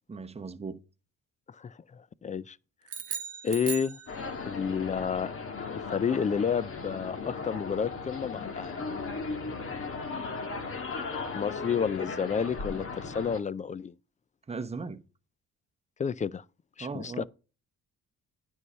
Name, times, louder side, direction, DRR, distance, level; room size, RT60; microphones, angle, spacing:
voice 1, 0.1-0.8 14.5-15.0 16.8-17.2, right 4 dB, 20° right, 0.9 m, -37 dB
voice 2, 1.5-2.6 3.4-4.0 4.4-5.3 5.7-8.7 11.3-13.9 16.0-16.4 16.8-17.2, left 6 dB, 25° left, 0.4 m, -30 dB
sound 1, 2.9-4.6, right 7 dB, 50° right, 1.0 m, -38 dB
sound 2, 4.1-13.4, left 4 dB, 45° left, 1.9 m, -37 dB
9.7 x 5.5 x 5.4 m
cardioid pair, 90°, 30 cm